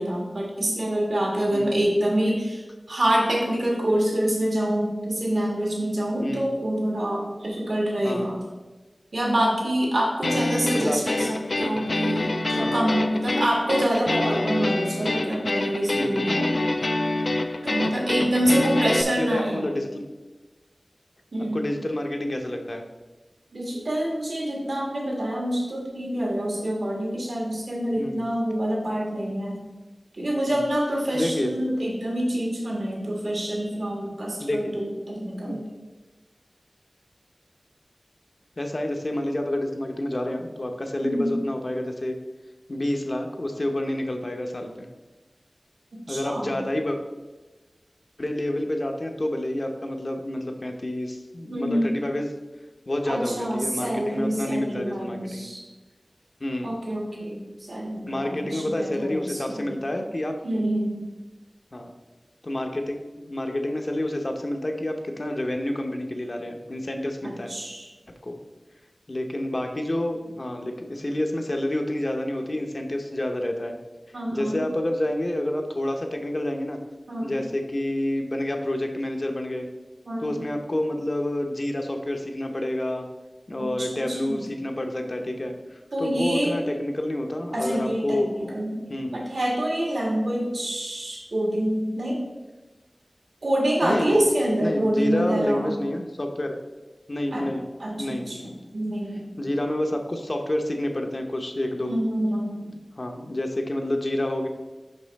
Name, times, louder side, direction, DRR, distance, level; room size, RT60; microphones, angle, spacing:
voice 1, 0.0-8.4 9.1-16.5 17.6-19.6 21.3-21.6 23.5-29.6 30.1-35.7 41.0-41.4 45.9-46.6 51.5-52.0 53.0-55.6 56.6-59.6 60.4-61.1 67.2-67.9 74.1-74.6 77.1-77.3 80.1-80.4 83.6-84.4 85.9-86.5 87.5-92.2 93.4-95.7 97.3-97.5 97.8-99.3 101.8-102.7, right 1 dB, 85° right, -2 dB, 1.6 m, -26 dB
sound 1, 10.2-19.0, left 2 dB, 70° left, 0.4 m, -26 dB
voice 2, 10.7-11.2 11.7-11.8 12.6-12.8 15.9-16.3 18.5-18.6 19.2-20.1 21.5-22.9 28.0-28.3 30.5-30.7 31.1-31.5 34.4-34.7 35.4-35.6 38.6-42.2 42.7-44.9 46.1-47.0 48.2-52.3 52.9-55.5 56.4-56.7 58.1-60.4 61.7-61.9 62.4-67.5 68.2-68.4 69.1-73.8 74.3-76.8 77.2-79.7 80.2-83.1 83.5-88.5 88.9-89.2 93.8-94.2 94.6-96.6 97.1-97.6 98.0-98.5 99.4-101.9 103.0-104.5, left 1 dB, 50° left, 4 dB, 0.8 m, -29 dB
5.6 x 5.4 x 4.1 m, 1.2 s
wide cardioid pair, 65°, 0 cm